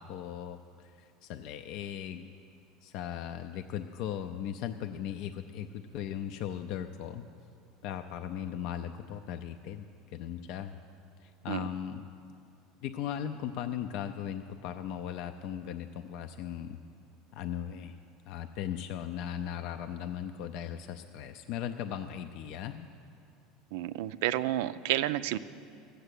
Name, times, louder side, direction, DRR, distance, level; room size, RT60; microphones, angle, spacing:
voice 1, 0.0-2.3 2.8-7.3 7.8-9.9 10.1-10.8 11.2-12.0 12.8-16.8 17.3-18.0 18.3-22.9, left 10 dB, 55° left, 7 dB, 0.5 m, -38 dB
voice 2, 23.7-25.4, right 14 dB, 75° right, 14 dB, 0.4 m, -30 dB
13.5 x 7.8 x 8.3 m, 2.4 s
supercardioid pair, 145°, 0 cm